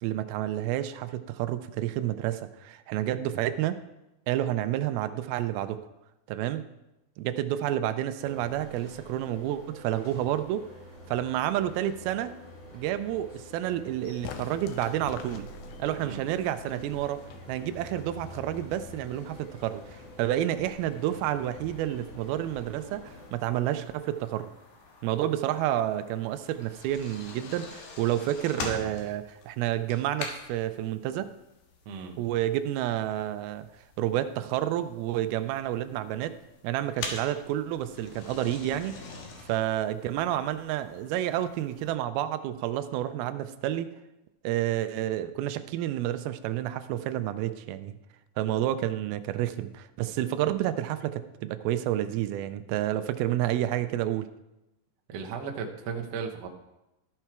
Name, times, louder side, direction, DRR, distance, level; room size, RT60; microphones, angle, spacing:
voice 1, 0.0-3.8 4.3-5.8 6.3-6.6 7.2-10.6 11.1-12.3 12.7-15.5 15.8-17.2 17.5-24.5 25.0-31.3 32.2-33.7 34.0-36.4 36.6-39.0 39.5-43.9 44.4-48.0 48.4-54.3, right 12 dB, 90° right, 11 dB, 2.5 m, -30 dB
sound 1, 8.2-23.3, equal, 35° left, 3.6 m, -48 dB
sound 2, 14.2-24.0, left 9 dB, 85° left, 1.6 m, -48 dB
voice 2, 16.0-16.3 31.8-32.2 55.1-56.5, right 6 dB, 70° right, 2 dB, 1.6 m, -36 dB
sound 3, 23.1-41.9, left 4 dB, 65° left, 2.5 m, -44 dB
13.5 x 6.0 x 4.5 m, 0.94 s
omnidirectional pair, 4.2 m